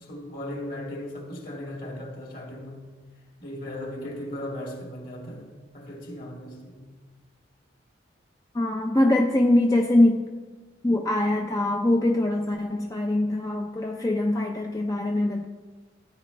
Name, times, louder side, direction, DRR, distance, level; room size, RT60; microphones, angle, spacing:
voice 1, 0.0-2.9 3.4-6.9, left 1 dB, 50° left, 2.4 m, -37 dB
voice 2, 8.5-10.3 10.8-15.4, left 1 dB, 20° left, 0.5 m, -23 dB
15.5 x 10.0 x 3.3 m
head